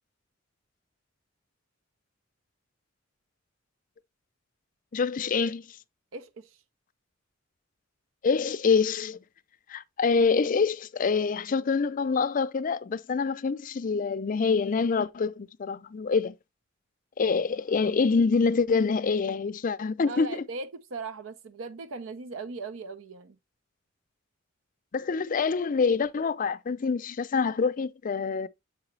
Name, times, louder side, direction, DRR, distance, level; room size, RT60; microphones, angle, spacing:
voice 1, 4.9-5.6 8.2-9.2 9.7-16.3 17.2-20.4 24.9-28.5, left 5 dB, 40° left, 0.4 m, -26 dB
voice 2, 6.1-6.6 20.1-23.4, right 3 dB, 80° right, 0.6 m, -39 dB
6.8 x 4.8 x 3.2 m
head